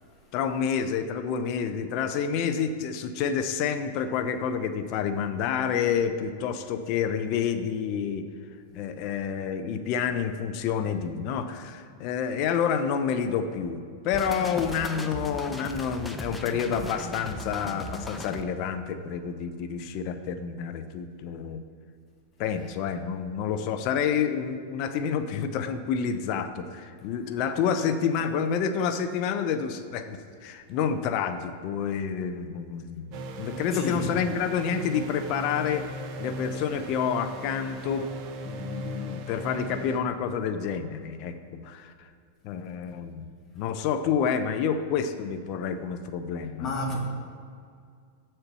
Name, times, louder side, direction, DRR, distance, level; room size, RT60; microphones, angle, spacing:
voice 1, 0.3-8.3 8.7-21.6 22.4-33.1 33.4-35.8 36.2-38.1 38.4-41.3 41.6-42.1 42.4-43.2 43.5-46.7, left 7 dB, 50° left, 9 dB, 0.6 m, -29 dB
sound 1, 14.1-18.4, left 1 dB, 5° left, 0.6 m, -37 dB
sound 2, 33.1-40.0, equal, 45° right, 0.9 m, -38 dB
voice 2, 33.7-34.1 46.6-47.0, left 2 dB, 30° left, -1 dB, 1.8 m, -31 dB
8.0 x 4.4 x 6.7 m, 2.3 s
hypercardioid pair, 125°, 0 cm